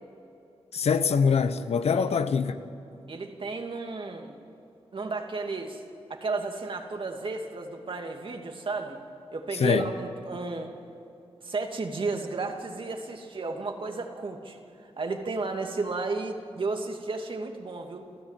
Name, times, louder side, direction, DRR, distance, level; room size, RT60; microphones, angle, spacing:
voice 1, 0.7-2.5 9.6-9.8, left 6 dB, 80° left, 1.1 m, -23 dB
voice 2, 3.1-4.3 4.9-5.8 6.1-9.0 9.3-10.7 11.4-18.1, right 3 dB, 55° right, 2.7 m, -33 dB
28.5 x 14.0 x 9.3 m
cardioid pair, 65°, 11 cm